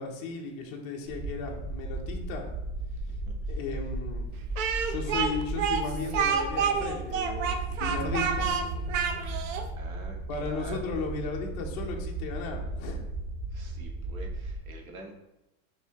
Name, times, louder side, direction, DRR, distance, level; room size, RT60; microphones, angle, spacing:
voice 1, 0.0-2.5 3.5-4.4 4.8-8.6 10.3-13.0, left 4 dB, 30° left, 1 dB, 0.4 m, -35 dB
sound 1, 1.1-14.6, right 2 dB, 30° right, 0.8 m, -35 dB
voice 2, 3.2-3.6 9.8-11.0 13.5-15.2, right 2 dB, 85° right, 1 dB, 1.1 m, -46 dB
Speech, 4.5-9.6, right 6 dB, 65° right, 0.6 m, -28 dB
Bowed string instrument, 7.9-11.2, right 1 dB, 5° right, 1.0 m, -46 dB
3.3 x 2.6 x 4.4 m, 0.92 s
supercardioid pair, 155°, 41 cm